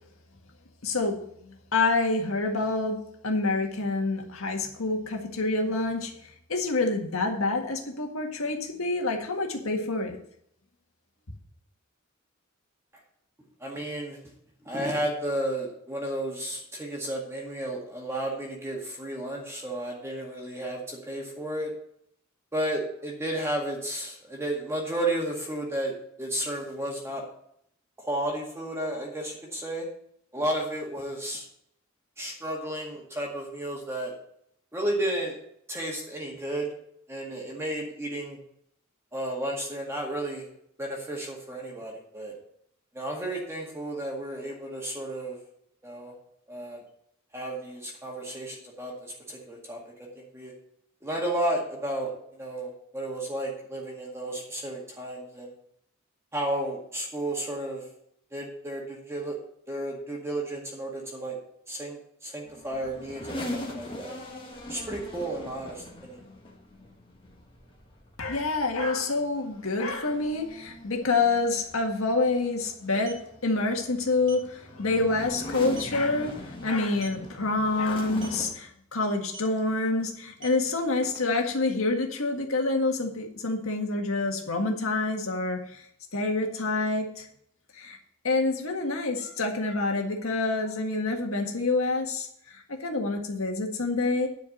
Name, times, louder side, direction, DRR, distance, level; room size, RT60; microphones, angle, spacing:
voice 1, 0.8-3.0 3.2-6.1 6.5-10.2 68.2-85.8 86.1-87.3 87.7-88.0 88.2-94.3, left 3 dB, 85° left, 2 dB, 1.8 m, -27 dB
voice 2, 13.6-14.2 14.7-21.7 22.5-27.2 28.0-29.9 30.3-31.5 32.2-34.1 34.7-35.4 35.7-36.7 37.1-38.4 39.1-40.5 40.8-42.3 42.9-45.4 45.8-46.1 46.5-46.8 47.3-50.5 51.0-55.5 56.3-57.8 58.3-59.4 59.7-61.4 61.7-64.2 64.7-66.2, right 1 dB, 15° right, -2 dB, 2.0 m, -33 dB
sound 1, 62.5-78.5, left 1 dB, 25° left, 1.7 m, -41 dB
sound 2, 71.7-71.8 72.8-73.3 74.2-74.5 74.9-75.1 75.4-75.5 75.8-76.0 76.9-77.3 78.1-78.4 79.3-79.6 80.2-81.5, right 4 dB, 65° right, 2.4 m, -45 dB
10.5 x 4.8 x 8.0 m, 0.70 s
head